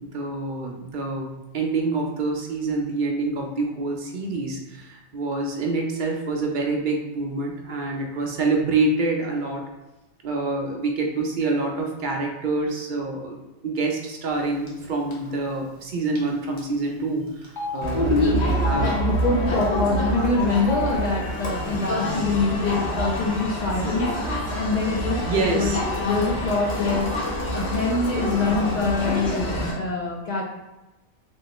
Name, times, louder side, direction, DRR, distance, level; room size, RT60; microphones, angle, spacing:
voice 1, 0.1-9.6 10.2-18.9 25.3-25.8, right 3 dB, 60° right, 1 dB, 0.5 m, -26 dB
Telephone, 14.7-14.8 15.1-15.3 16.1-16.3 16.6-16.7 17.4-17.8 18.5-18.8 19.6-19.9 20.5-20.9 21.7-21.8 22.1-22.8, left 3 dB, 25° left, 0.7 m, -32 dB
Crowd, 17.8-29.7, equal, 65° left, 1.1 m, -26 dB
voice 2, 17.9-18.3 18.8-24.1 24.6-25.8 26.0-29.4 29.7-30.4, left 3 dB, 80° left, -2 dB, 0.4 m, -24 dB
3.5 x 3.1 x 2.9 m, 1.0 s
omnidirectional pair, 1.3 m